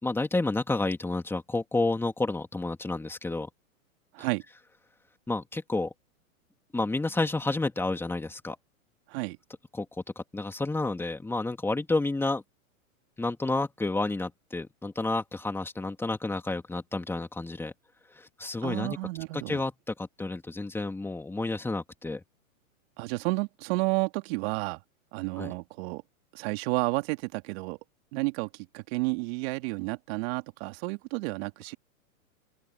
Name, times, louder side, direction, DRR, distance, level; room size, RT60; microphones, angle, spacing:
voice 1, 0.0-3.5 5.3-5.9 6.7-8.6 9.7-9.9 10.2-12.4 13.2-17.7 18.2-19.0 19.3-22.2 25.4-25.5, left 2 dB, 5° left, 2.7 m, -30 dB
voice 2, 18.6-19.6 23.0-24.8 25.1-26.0 26.3-27.8 28.1-31.8, right 25 dB, 45° right, 2.7 m, -31 dB
open air
hypercardioid pair, 125°, 42 cm